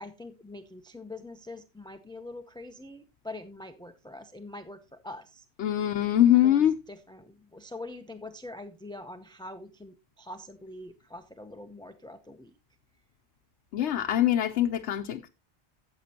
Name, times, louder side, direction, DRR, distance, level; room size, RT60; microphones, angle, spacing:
voice 1, 0.0-5.4 6.4-12.5, left 2 dB, 5° left, 0.5 m, -44 dB
voice 2, 5.6-6.8 13.7-15.3, left 11 dB, 80° left, 1.0 m, -23 dB
13.5 x 8.0 x 2.9 m
omnidirectional pair, 1.1 m